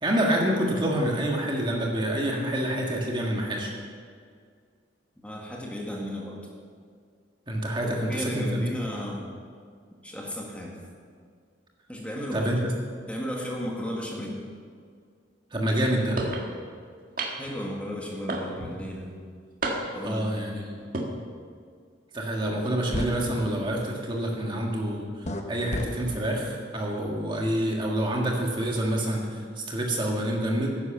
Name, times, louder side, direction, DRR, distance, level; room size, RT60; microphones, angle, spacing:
voice 1, 0.0-3.7 7.5-8.6 12.3-12.6 15.5-16.2 20.0-20.7 22.1-30.8, right 1 dB, 25° right, -1 dB, 1.7 m, -27 dB
voice 2, 5.2-6.4 7.8-9.3 10.0-10.8 11.9-12.5 13.1-14.4 17.4-19.1 19.9-20.7, equal, 5° left, -2 dB, 1.7 m, -34 dB
sound 1, 16.2-16.5 17.2-17.6 18.3-18.8 19.6-20.1 20.8-21.1, right 2 dB, 50° right, 1.6 m, -30 dB
sound 2, 22.5-22.6 22.9-23.1 25.2-25.4 25.7-25.9, left 1 dB, 40° left, 1.0 m, -30 dB
11.5 x 10.5 x 6.9 m, 2.1 s
head